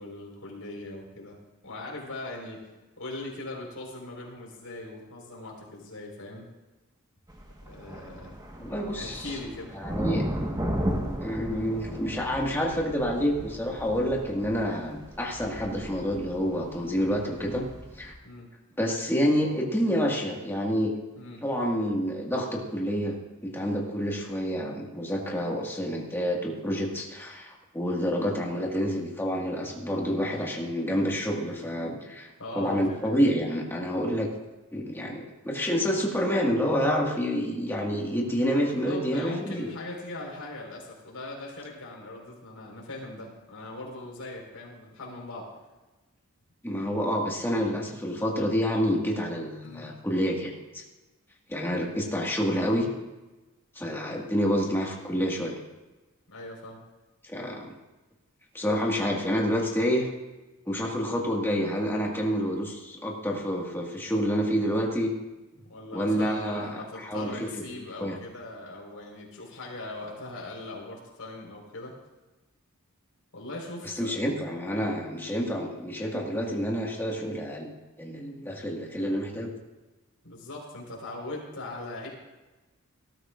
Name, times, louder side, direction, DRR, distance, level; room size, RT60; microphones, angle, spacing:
voice 1, 0.0-1.4 1.6-2.6 3.0-6.5 7.6-8.4 8.9-9.7 18.2-18.5 21.2-21.4 32.4-33.4 38.6-45.5 49.6-49.9 56.3-56.8 65.6-71.9 73.3-74.2 80.2-82.1, left 2 dB, 75° left, -2 dB, 4.5 m, -40 dB
sound 1, 7.3-18.1, equal, 20° right, 1.4 m, -35 dB
voice 2, 8.6-9.4 9.7-10.3 11.2-17.7 18.0-18.1 18.8-21.0 21.4-23.2 23.4-32.3 32.6-34.3 34.7-39.7 46.6-50.8 51.5-52.9 53.8-55.6 57.2-57.7 58.5-60.1 60.7-65.1 65.5-65.6 65.9-67.5 68.0-68.2 73.8-77.7 78.0-79.5, equal, 10° left, -2 dB, 1.8 m, -28 dB
18.5 x 13.5 x 2.5 m, 1.1 s
head